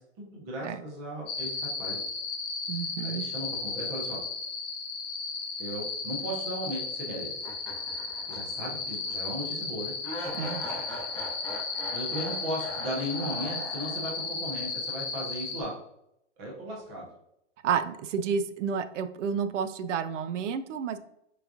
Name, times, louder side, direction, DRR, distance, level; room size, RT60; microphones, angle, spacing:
voice 1, 0.0-2.0 3.0-4.2 5.6-7.4 8.3-9.9 11.9-15.7 16.4-17.1, equal, 10° right, -3 dB, 0.4 m, -36 dB
sound 1, 1.3-15.6, left 4 dB, 45° left, 1.4 m, -35 dB
voice 2, 2.7-3.2 10.3-10.6 17.6-21.0, right 7 dB, 75° right, 12 dB, 0.5 m, -30 dB
sound 2, 7.4-8.7 9.1-9.2 10.0-14.3, left 1 dB, 5° left, 0.8 m, -40 dB
4.7 x 3.5 x 2.5 m, 0.78 s
hypercardioid pair, 160°, 37 cm